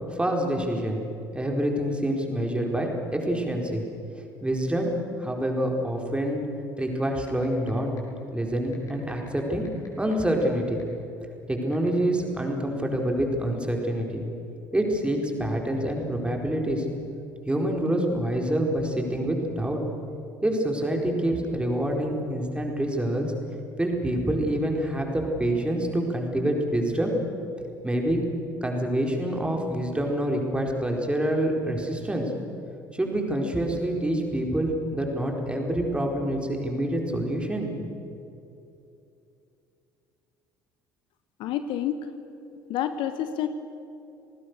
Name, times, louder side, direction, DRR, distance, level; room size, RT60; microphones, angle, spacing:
voice 1, 0.1-1.0 1.3-3.8 4.4-4.9 5.2-6.4 6.8-8.0 8.3-9.6 10.0-10.8 11.5-14.2 14.7-16.8 17.5-19.8 20.4-23.3 23.8-27.2 27.8-28.2 28.6-32.3 32.9-37.9, right 1 dB, 10° right, 1 dB, 4.5 m, -26 dB
sound 1, 6.8-6.9 7.3-7.7 8.0-8.1 8.7-10.5 10.8-10.9 11.7-11.9, left 6 dB, 35° left, 6.2 m, -52 dB
voice 2, 41.4-42.0 42.7-43.5, left 10 dB, 55° left, 11 dB, 1.1 m, -28 dB
28.5 x 19.5 x 6.7 m, 2.8 s
figure-of-eight pair, 55°, 10 cm